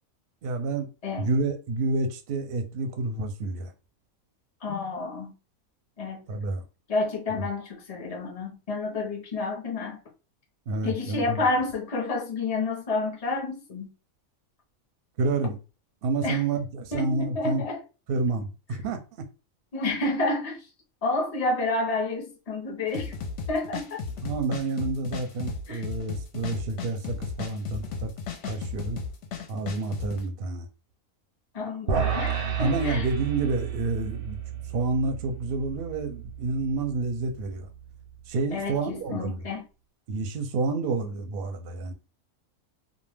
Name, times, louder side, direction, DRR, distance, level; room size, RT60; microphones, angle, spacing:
voice 1, 0.4-0.9 1.2-3.7 6.3-6.6 10.7-11.5 15.2-15.6 16.0-17.6 18.1-19.0 24.2-28.1 28.5-29.0 29.5-30.7 32.6-34.4 34.7-37.7 38.3-39.4 40.1-41.9, right 3 dB, 60° right, 0.6 m, -29 dB
voice 2, 4.6-5.3 6.0-6.2 6.9-10.0 10.8-13.9 16.2-16.4 16.9-17.8 19.7-20.7 21.0-23.1 23.5-24.0 25.7-25.9 31.5-33.1 38.5-39.7, left 3 dB, 40° left, 0.6 m, -29 dB
sound 1, 22.9-30.2, left 5 dB, 65° left, 0.8 m, -35 dB
sound 2, 31.9-38.3, right 7 dB, 90° right, 1.0 m, -32 dB
2.4 x 2.1 x 3.2 m
omnidirectional pair, 1.4 m